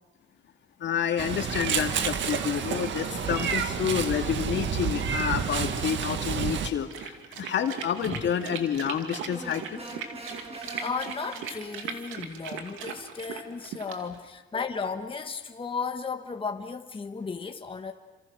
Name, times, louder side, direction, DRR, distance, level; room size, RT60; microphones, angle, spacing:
voice 1, 0.8-9.8, left 8 dB, 65° left, 2.2 m, -29 dB
Meow, 1.2-6.7, right 6 dB, 70° right, 1.9 m, -29 dB
sound 1, 6.9-14.2, right 7 dB, 90° right, 2.6 m, -38 dB
sound 2, 9.3-11.9, right 2 dB, 30° right, 6.5 m, -42 dB
voice 2, 10.8-17.9, left 5 dB, 25° left, 1.4 m, -34 dB
29.5 x 26.5 x 6.3 m
cardioid pair, 90°, 20 cm